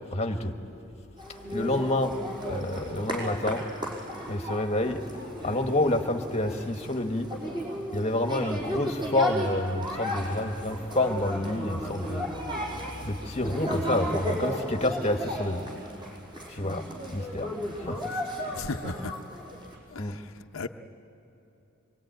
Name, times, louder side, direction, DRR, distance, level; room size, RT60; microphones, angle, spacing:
voice 1, 0.1-0.5 1.5-2.2 2.5-3.7 4.3-5.0 5.4-7.3 7.9-12.3 13.0-15.7 16.5-17.5 17.8-18.0 20.0-20.2, left 1 dB, 30° left, 5 dB, 1.3 m, -28 dB
sound 1, 1.2-19.7, equal, 20° right, 5.4 m, -34 dB
voice 2, 18.5-19.1 19.9-20.7, left 3 dB, 80° left, 6 dB, 0.7 m, -36 dB
24.0 x 23.5 x 9.2 m, 2.9 s
head